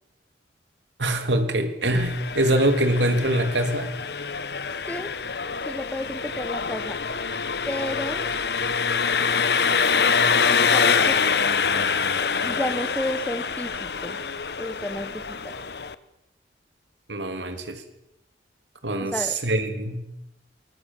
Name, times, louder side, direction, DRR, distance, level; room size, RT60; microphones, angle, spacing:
voice 1, 1.0-3.9 17.1-17.8 18.8-20.0, right 1 dB, 85° right, 7 dB, 3.4 m, -24 dB
Engine, 1.9-15.9, left 5 dB, 65° left, 1.2 m, -25 dB
voice 2, 5.6-7.0 7.7-8.3 10.6-11.2 12.4-14.2 14.6-15.6 19.0-19.4, left 1 dB, 10° left, 11 dB, 1.4 m, -31 dB
24.0 x 21.5 x 7.5 m, 0.83 s
head